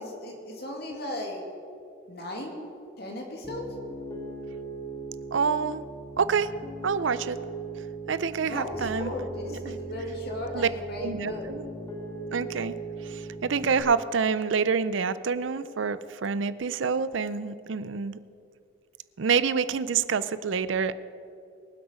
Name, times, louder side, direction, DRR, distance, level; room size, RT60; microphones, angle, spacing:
voice 1, 0.0-1.4 2.1-2.6 3.0-3.7 8.4-11.5, left 1 dB, 55° left, 1 dB, 2.4 m, -36 dB
Piano, 3.4-13.8, right 3 dB, 15° left, 2.1 m, -39 dB
voice 2, 5.3-5.8 6.2-6.5 6.8-7.4 8.1-9.1 9.5-9.6 10.5-10.7 11.0-11.6 12.3-12.7 13.1-18.2 19.2-20.9, right 5 dB, 70° right, 15 dB, 0.5 m, -27 dB
23.5 x 8.0 x 5.1 m, 2.5 s
head